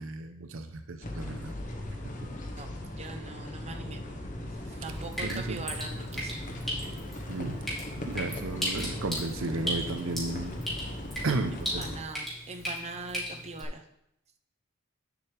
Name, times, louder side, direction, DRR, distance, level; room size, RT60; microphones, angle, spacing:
voice 1, 0.0-1.5 2.0-2.1 5.2-5.7 7.3-7.6 8.1-10.7 11.2-12.0, right 3 dB, 80° right, 8 dB, 0.7 m, -34 dB
sound 1, 1.0-12.0, left 1 dB, 40° left, 1.1 m, -38 dB
voice 2, 2.5-4.0 4.7-6.4 11.8-13.8, right 3 dB, 35° right, 5 dB, 0.8 m, -41 dB
Drip, 4.8-13.6, equal, ahead, 2.7 m, -37 dB
10.0 x 7.1 x 3.4 m, 0.80 s
head